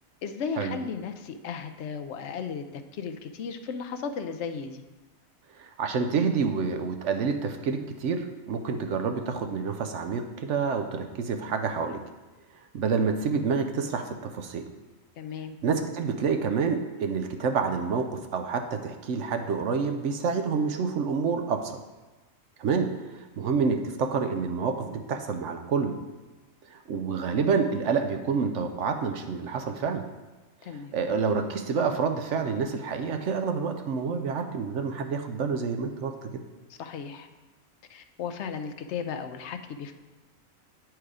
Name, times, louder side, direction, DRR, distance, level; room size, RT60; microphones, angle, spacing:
voice 1, 0.2-4.8 15.2-15.6 30.6-30.9 36.7-37.3 37.9-39.9, left 6 dB, 65° left, 8 dB, 0.7 m, -35 dB
voice 2, 5.6-12.0 12.7-14.6 15.6-21.8 22.6-25.9 26.7-30.0 30.9-36.4, right 5 dB, 65° right, 6 dB, 0.9 m, -28 dB
9.0 x 4.7 x 4.8 m, 1.2 s
omnidirectional pair, 1.5 m